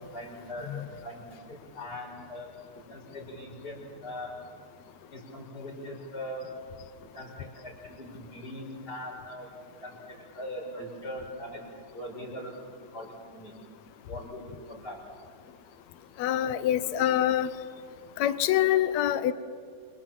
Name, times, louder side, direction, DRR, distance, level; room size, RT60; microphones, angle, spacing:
voice 1, 0.1-2.5 2.9-4.3 5.1-6.5 7.0-9.5 9.8-11.6 11.9-12.5 12.9-13.5 14.1-15.0, equal, 30° left, 0 dB, 6.3 m, -41 dB
voice 2, 16.2-17.5 18.2-19.3, left 12 dB, 70° left, 14 dB, 2.2 m, -25 dB
28.0 x 27.5 x 7.6 m, 2.2 s
omnidirectional pair, 3.4 m